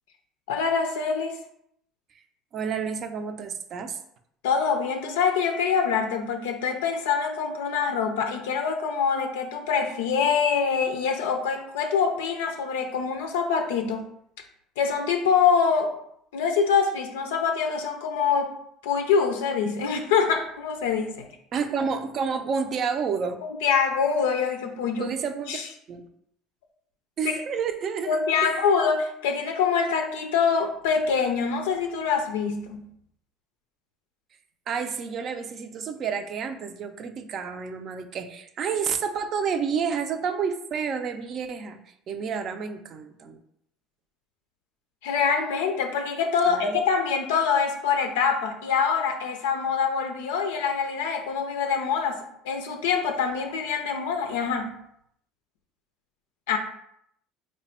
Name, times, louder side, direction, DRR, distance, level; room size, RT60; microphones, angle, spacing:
voice 1, 0.5-1.4 4.4-14.0 14.8-15.9 16.3-18.5 18.8-21.3 23.4-25.1 25.5-25.7 28.1-32.8 45.0-54.7 56.5-56.6, left 6 dB, 90° left, 4 dB, 0.4 m, -25 dB
voice 2, 2.5-4.0 21.5-23.4 25.0-25.6 25.9-26.0 27.2-28.6 34.7-43.4 46.5-46.8, right 6 dB, 50° right, 7 dB, 0.4 m, -30 dB
3.3 x 2.2 x 4.2 m, 0.72 s
supercardioid pair, 85°, 0 cm